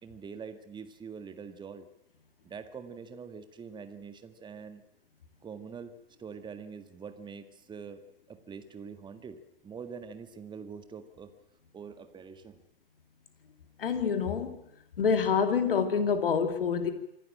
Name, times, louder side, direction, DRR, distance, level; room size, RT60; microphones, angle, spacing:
voice 1, 0.0-1.9 2.4-4.8 5.4-5.9 6.2-8.0 8.3-9.4 9.6-11.3 11.7-12.6, right 6 dB, 15° right, 9 dB, 1.7 m, -44 dB
voice 2, 13.8-14.6 15.0-16.9, left 6 dB, 70° left, 8 dB, 2.5 m, -27 dB
26.0 x 12.0 x 9.0 m, 0.84 s
figure-of-eight pair, 100°, 29 cm